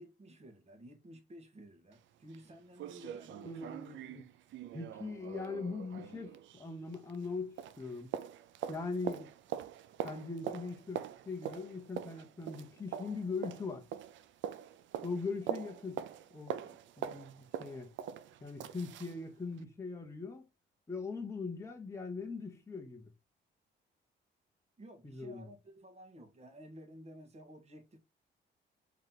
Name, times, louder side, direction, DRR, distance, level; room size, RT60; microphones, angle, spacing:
voice 1, 0.0-3.8 24.8-28.0, equal, 35° right, 1.3 m, -53 dB
sound 1, 1.9-2.0 2.3-2.4 2.8-7.3 7.6-19.2 19.6-19.7, right 10 dB, 70° right, 0.4 m, -43 dB
voice 2, 3.4-4.2 4.7-8.1 8.7-9.3 10.0-13.9 15.0-16.0 16.3-16.6 17.0-17.9 18.4-20.4 20.9-23.1 25.0-25.5, left 4 dB, 15° left, 0.8 m, -41 dB
3.2 x 2.9 x 3.8 m
cardioid pair, 90°, 20 cm